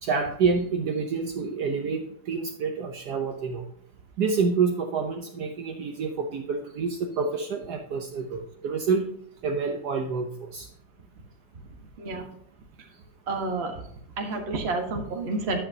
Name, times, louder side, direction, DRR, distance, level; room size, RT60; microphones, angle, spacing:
voice 1, 0.0-3.6 4.2-9.0 9.4-10.7, right 5 dB, 65° right, 3 dB, 1.3 m, -28 dB
voice 2, 12.0-12.3 13.3-13.7 14.2-15.6, right 3 dB, 35° right, 3 dB, 1.5 m, -29 dB
10.0 x 8.5 x 2.8 m, 0.69 s
omnidirectional pair, 2.0 m